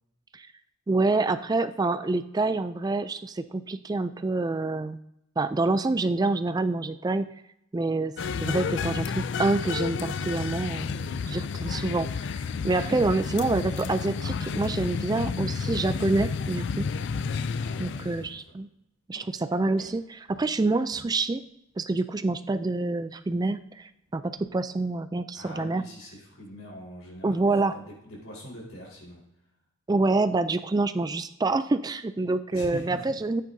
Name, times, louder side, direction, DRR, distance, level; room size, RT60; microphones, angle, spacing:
voice 1, 0.9-5.0 5.4-7.3 7.7-8.1 8.4-12.1 12.3-16.9 17.8-18.7 19.1-21.4 21.8-25.9 27.2-27.8 29.9-33.4, right 3 dB, 20° right, 11 dB, 0.3 m, -27 dB
sound 1, 8.2-18.3, left 5 dB, 60° left, 0.4 m, -31 dB
sound 2, 12.4-17.6 18.0-18.2 18.6-18.8 19.1-19.3 19.7-20.6 20.9-24.5, equal, 30° left, 2.7 m, -48 dB
voice 2, 17.5-18.6 25.3-29.2 32.5-33.2, equal, 85° left, -3 dB, 4.2 m, -43 dB
14.0 x 9.1 x 2.7 m, 0.81 s
head